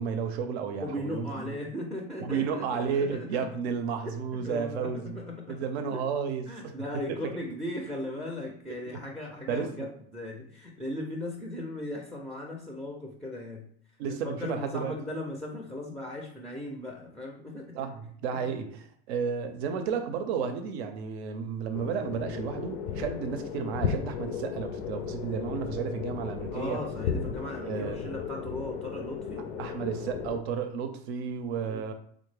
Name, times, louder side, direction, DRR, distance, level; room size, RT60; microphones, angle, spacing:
voice 1, 0.0-1.4 2.2-5.2 5.5-6.7 7.1-7.3 8.9-9.0 9.5-9.9 14.0-14.9 17.7-26.8 27.6-28.1 29.6-31.9, right 6 dB, 85° right, 7 dB, 0.6 m, -32 dB
voice 2, 0.8-3.6 4.0-6.0 6.5-13.7 14.1-17.9 18.3-18.5 24.1-24.4 26.5-29.5 31.5-31.8, left 1 dB, ahead, 0 dB, 0.3 m, -38 dB
sound 1, 21.7-30.4, left 6 dB, 70° left, 0.5 m, -35 dB
3.5 x 2.0 x 3.2 m, 0.62 s
supercardioid pair, 110°, 31 cm